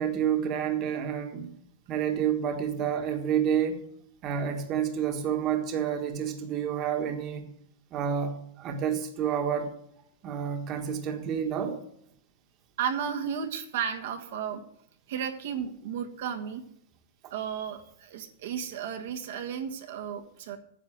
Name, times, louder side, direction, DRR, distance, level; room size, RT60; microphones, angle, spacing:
voice 1, 0.0-1.5 1.9-3.8 4.2-7.5 7.9-9.7 10.2-11.8, right 8 dB, 30° right, 4 dB, 1.5 m, -29 dB
voice 2, 12.8-14.6 15.1-16.6 17.3-20.6, right 8 dB, 65° right, 3 dB, 1.4 m, -33 dB
9.9 x 7.5 x 7.4 m, 0.73 s
supercardioid pair, 165°, 0 cm